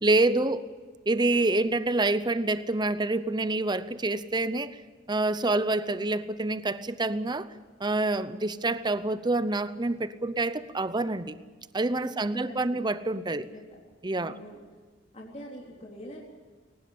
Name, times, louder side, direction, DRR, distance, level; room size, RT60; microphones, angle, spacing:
voice 1, 0.0-0.6 1.1-4.8 5.1-7.5 7.8-11.4 11.7-13.5 14.0-14.3, right 2 dB, 25° right, 14 dB, 0.8 m, -27 dB
voice 2, 12.2-12.8 13.3-13.8 14.2-14.6 15.1-16.2, equal, 35° left, -2 dB, 3.7 m, -44 dB
22.0 x 19.0 x 8.7 m, 1.4 s
head